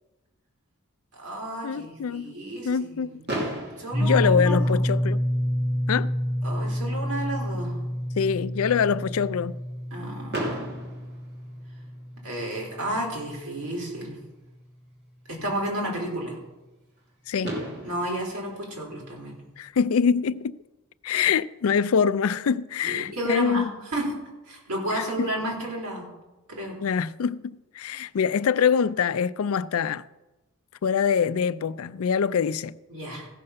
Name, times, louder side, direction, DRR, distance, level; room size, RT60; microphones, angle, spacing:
voice 1, 1.1-3.2 3.8-4.8 6.4-7.8 9.9-10.8 12.2-14.2 15.3-16.4 17.8-19.3 22.8-23.7 23.9-24.1 24.5-26.1 26.5-26.8 32.9-33.3, right 1 dB, 90° right, 3.9 m, -32 dB
voice 2, 1.6-2.4 2.6-3.2 4.0-5.2 5.9-6.1 8.2-9.5 17.3-17.5 19.6-20.6 21.0-23.7 24.9-25.3 26.8-30.0 30.8-32.7, left 6 dB, 70° left, 0.4 m, -24 dB
Fireworks, 3.3-5.3 6.1-6.2 6.4-6.6 6.9-7.0 10.3-12.1 13.8-13.9 17.0-17.1 17.4-19.7, right 1 dB, 50° right, 2.9 m, -35 dB
sound 1, 3.9-13.8, equal, ahead, 0.9 m, -28 dB
15.0 x 6.6 x 5.7 m
head